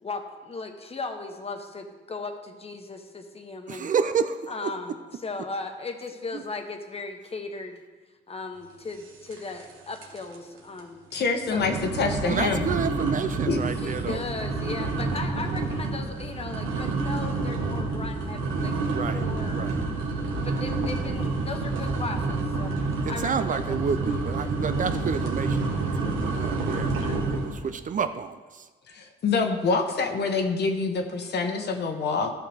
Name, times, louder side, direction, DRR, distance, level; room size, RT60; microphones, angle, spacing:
voice 1, 0.0-3.9 4.5-7.8 8.3-11.0 11.5-11.6 13.8-18.7 19.1-19.8 20.2-22.8 23.1-23.8 24.2-24.3 27.0-27.2, left 3 dB, 30° left, 5 dB, 1.2 m, -37 dB
voice 2, 3.7-4.7 12.3-14.2 18.9-19.3 19.5-19.8 23.1-26.9 27.3-28.4, right 6 dB, 40° right, 10 dB, 0.4 m, -29 dB
sound 1, 9.3-9.7 10.0-10.4 10.8-10.9 11.5-27.6, right 3 dB, 85° right, 1.4 m, -28 dB
voice 3, 11.1-12.7 13.5-13.6 28.9-32.3, left 4 dB, 55° left, 4 dB, 1.2 m, -26 dB
14.0 x 5.8 x 3.5 m, 1.3 s
cardioid pair, 90°, 20 cm